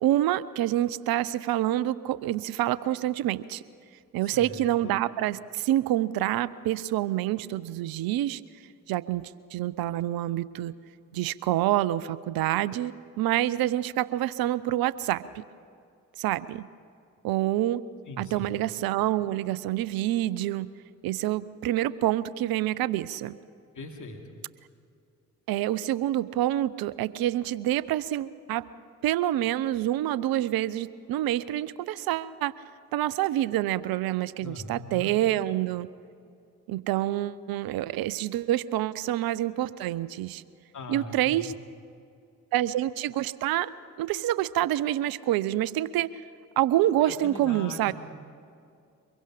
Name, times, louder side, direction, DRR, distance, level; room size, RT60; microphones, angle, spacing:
voice 1, 0.0-3.6 4.1-8.4 8.9-10.7 11.1-15.2 16.2-16.6 17.2-17.8 18.2-20.7 21.0-23.3 25.5-28.7 29.0-32.5 32.9-35.9 36.7-40.4 40.9-41.5 42.5-43.7 44.0-46.1 46.6-47.9, right 14 dB, 60° right, 19 dB, 0.7 m, -27 dB
voice 2, 4.2-5.0 18.1-18.5 23.7-24.2 34.4-35.1 40.7-41.4 47.0-47.9, left 2 dB, 45° left, 1 dB, 2.8 m, -40 dB
24.0 x 22.0 x 5.0 m, 2.4 s
figure-of-eight pair, 40°, 41 cm